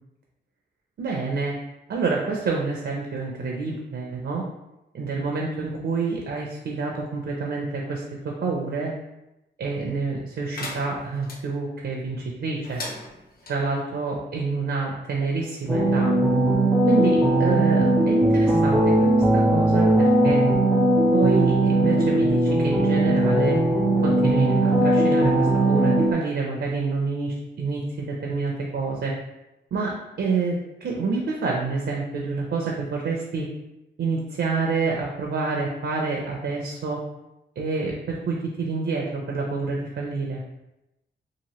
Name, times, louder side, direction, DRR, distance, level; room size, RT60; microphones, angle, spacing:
voice 1, 1.0-1.5 1.9-4.4 4.9-8.9 9.6-12.8 13.5-16.1 16.9-20.4 21.1-23.6 24.0-29.2 29.7-33.5 34.0-37.0 37.6-40.4, right 4 dB, 65° right, -1 dB, 0.5 m, -27 dB
sound 1, 10.5-11.4 12.6-13.6, left 2 dB, 50° left, 0.6 m, -37 dB
sound 2, 15.7-26.1, right 1 dB, 5° right, 0.5 m, -19 dB
2.9 x 2.5 x 2.9 m, 0.94 s
wide cardioid pair, 140°, 19 cm